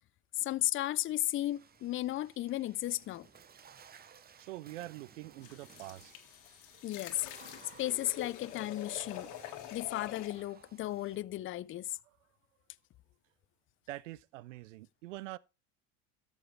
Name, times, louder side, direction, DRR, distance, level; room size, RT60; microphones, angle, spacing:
voice 1, 0.4-3.3 6.8-7.2 7.8-9.3 9.7-11.9, left 14 dB, 35° left, 0.5 m, -34 dB
Water / Splash splatter, 1.2-11.2, right 7 dB, 25° right, 0.8 m, -58 dB
voice 2, 4.4-6.2 12.1-12.2 13.9-15.4, right 17 dB, 85° right, 0.5 m, -45 dB
sound 1, 5.4-10.4, left 12 dB, 55° left, 1.6 m, -46 dB
13.5 x 6.0 x 3.2 m
hypercardioid pair, 80°, 37 cm